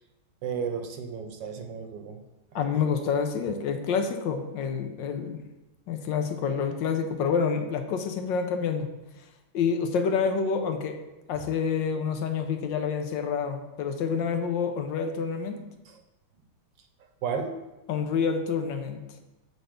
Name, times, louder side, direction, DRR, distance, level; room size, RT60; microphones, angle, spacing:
voice 1, 0.4-2.2 2.6-2.7 11.4-11.5 15.9-16.0 17.2-17.5, right 6 dB, 70° right, 5 dB, 1.3 m, -33 dB
voice 2, 2.5-5.4 5.9-8.9 9.5-11.0 11.3-15.6 17.9-19.0, left 6 dB, 75° left, 6 dB, 1.3 m, -28 dB
7.9 x 4.1 x 5.0 m, 1.0 s
omnidirectional pair, 2.2 m